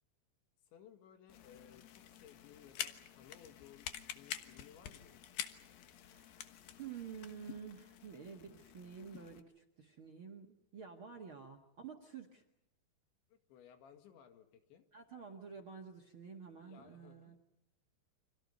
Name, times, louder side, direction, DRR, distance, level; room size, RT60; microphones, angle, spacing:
voice 1, 0.7-3.9 4.1-5.2 13.3-14.9 16.6-17.3, left 9 dB, 85° left, 7 dB, 4.4 m, -60 dB
sound 1, 1.3-9.4, left 11 dB, 65° left, 2.7 m, -48 dB
voice 2, 6.0-6.5 6.8-12.4 14.9-17.3, right 6 dB, 45° right, 8 dB, 1.7 m, -50 dB
30.0 x 26.0 x 5.4 m, 0.83 s
omnidirectional pair, 5.2 m